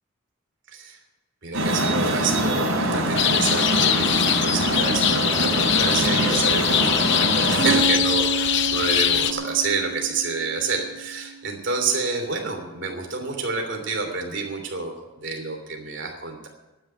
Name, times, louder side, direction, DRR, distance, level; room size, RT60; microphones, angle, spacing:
voice 1, 1.4-4.1 4.4-14.9 15.2-16.5, right 4 dB, 60° right, 4 dB, 3.0 m, -28 dB
Traffic noise roadway noise, 1.5-7.8, right 1 dB, 75° right, 4.1 m, -24 dB
sound 1, 3.2-9.3, left 10 dB, 55° left, 0.8 m, -22 dB
sound 2, 7.6-11.5, right 4 dB, 75° left, 5.2 m, -30 dB
12.5 x 10.0 x 8.1 m, 1.1 s
head